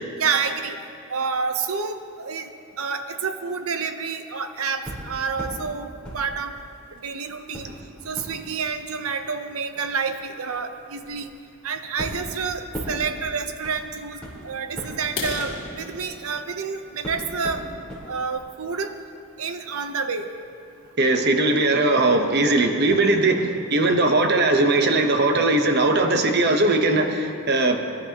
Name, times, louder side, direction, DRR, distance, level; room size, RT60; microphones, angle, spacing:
voice 1, 0.2-0.8 1.1-2.5 2.8-6.5 7.0-7.7 8.0-11.3 11.6-17.6 18.1-18.9 19.4-20.3, right 5 dB, 75° right, 8 dB, 0.8 m, -28 dB
sound 1, 4.8-5.6 6.0-7.0 7.5-16.6 17.0-18.0 18.4-18.5, equal, 5° left, 3.7 m, -38 dB
sound 2, 15.0-18.8 19.3-19.5 20.0-20.1 20.5-20.7 21.0-21.1 21.5-21.6 21.9-22.4, left 3 dB, 55° left, 2.2 m, -37 dB
voice 2, 21.0-27.8, right 2 dB, 45° right, 5 dB, 0.9 m, -19 dB
23.0 x 11.5 x 2.9 m, 2.5 s
head